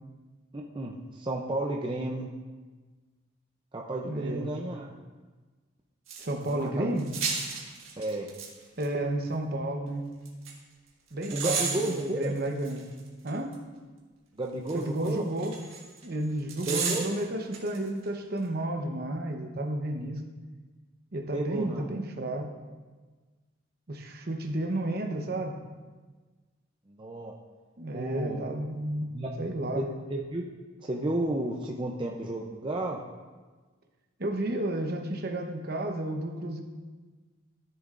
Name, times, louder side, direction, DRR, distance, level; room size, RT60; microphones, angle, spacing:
voice 1, 0.5-2.3 3.7-4.9 6.5-6.9 8.0-8.3 11.3-12.3 14.4-15.3 16.7-17.1 21.3-21.8 26.9-27.3 27.9-28.4 29.1-29.3 29.8-29.9 30.1-30.4 30.9-33.0, right 2 dB, 25° right, -1 dB, 0.5 m, -32 dB
voice 2, 4.0-4.5 6.2-7.1 8.8-10.0 11.1-12.9 13.2-13.5 14.7-15.5 16.0-20.2 21.1-22.5 23.9-25.6 27.8-29.1 29.4-29.9 34.2-36.6, right 1 dB, 50° right, 3 dB, 0.9 m, -32 dB
sound 1, 6.1-6.5 7.0-8.5 8.8-8.9 10.3-10.5 11.2-13.5 14.7-16.1 16.5-17.8 18.0-18.1, right 5 dB, 90° right, 1.7 m, -34 dB
13.0 x 7.0 x 2.5 m, 1.3 s
head